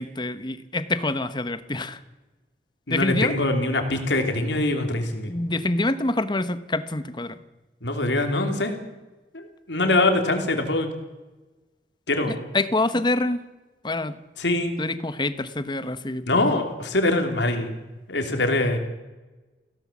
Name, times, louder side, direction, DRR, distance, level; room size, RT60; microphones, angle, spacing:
voice 1, 0.0-2.0 2.9-3.3 5.3-7.4 12.5-13.4 13.8-14.2 14.8-16.2, left 2 dB, 25° left, 12 dB, 1.1 m, -26 dB
voice 2, 2.9-5.3 7.8-8.8 9.3-10.9 12.1-12.4 14.4-14.7 16.3-18.8, left 2 dB, 85° left, 5 dB, 3.3 m, -23 dB
21.5 x 16.5 x 7.4 m, 1.1 s
head